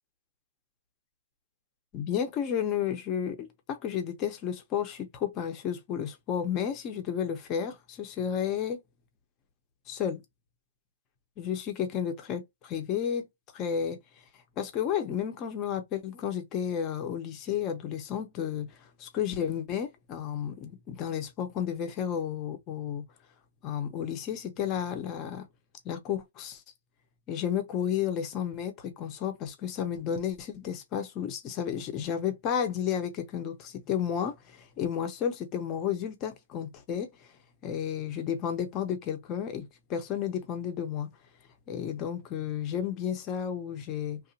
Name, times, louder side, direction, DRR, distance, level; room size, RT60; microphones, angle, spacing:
voice 1, 1.9-8.8 9.9-10.2 11.4-13.3 13.5-14.0 14.6-23.0 23.6-25.5 25.8-26.6 27.3-37.1 37.6-41.1 41.7-44.2, left 8 dB, 20° left, 0.6 m, -32 dB
2.9 x 2.0 x 2.7 m
hypercardioid pair, 165°, 0 cm